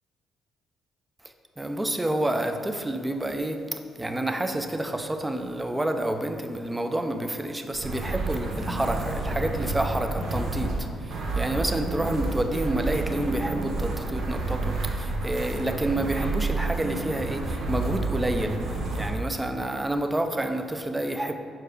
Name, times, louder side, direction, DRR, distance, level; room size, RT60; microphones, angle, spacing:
voice 1, 1.6-21.3, right 1 dB, 15° right, 6 dB, 0.5 m, -29 dB
sound 1, 7.7-19.1, right 3 dB, 75° right, 1.0 m, -30 dB
5.4 x 4.6 x 5.0 m, 2.2 s
cardioid pair, 90°, 0 cm